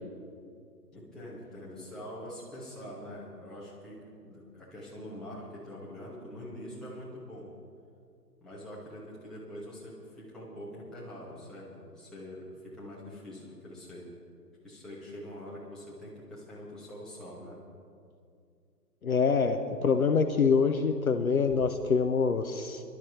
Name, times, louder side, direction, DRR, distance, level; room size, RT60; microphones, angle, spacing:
voice 1, 0.9-7.5 8.4-14.1 14.6-17.6, equal, ahead, -9 dB, 2.1 m, -44 dB
voice 2, 19.0-22.8, left 5 dB, 60° left, 8 dB, 0.9 m, -25 dB
24.5 x 12.0 x 3.4 m, 2.4 s
figure-of-eight pair, 135°, 49 cm